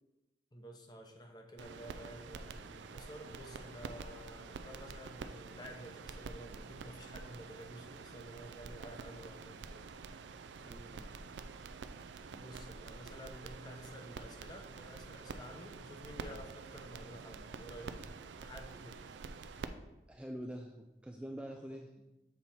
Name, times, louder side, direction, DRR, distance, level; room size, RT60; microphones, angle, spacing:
voice 1, 0.5-9.8 12.3-18.0 18.4-19.0 21.7-21.8, equal, 25° left, 3 dB, 0.7 m, -51 dB
sound 1, 1.6-19.7, right 4 dB, 85° right, 0.4 m, -48 dB
voice 2, 10.6-11.1 20.1-21.9, equal, 5° right, 2 dB, 0.3 m, -45 dB
7.3 x 4.1 x 4.4 m, 0.99 s
head